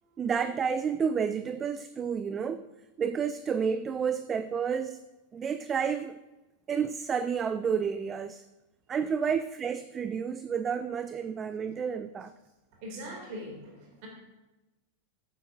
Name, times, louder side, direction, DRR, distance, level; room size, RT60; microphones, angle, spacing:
voice 1, 0.2-2.6 3.0-5.0 5.3-6.2 6.7-8.4 8.9-12.3, right 6 dB, 20° right, 13 dB, 0.3 m, -30 dB
voice 2, 12.8-14.1, equal, 45° right, 0 dB, 2.6 m, -42 dB
15.0 x 7.8 x 2.6 m, 1.1 s
figure-of-eight pair, 90°, 0 cm